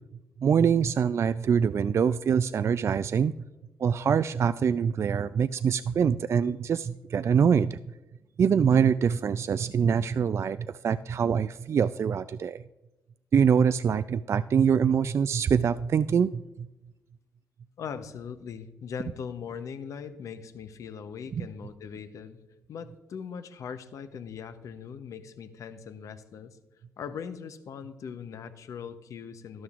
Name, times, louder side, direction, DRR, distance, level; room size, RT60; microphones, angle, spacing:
voice 1, 0.4-3.3 3.8-7.8 8.4-12.6 13.3-16.7, right 7 dB, 50° right, 14 dB, 0.3 m, -24 dB
voice 2, 17.8-22.4 22.7-26.6 27.0-29.6, left 7 dB, 65° left, 11 dB, 0.8 m, -40 dB
12.5 x 12.0 x 2.5 m, 1.0 s
hypercardioid pair, 45°, 6 cm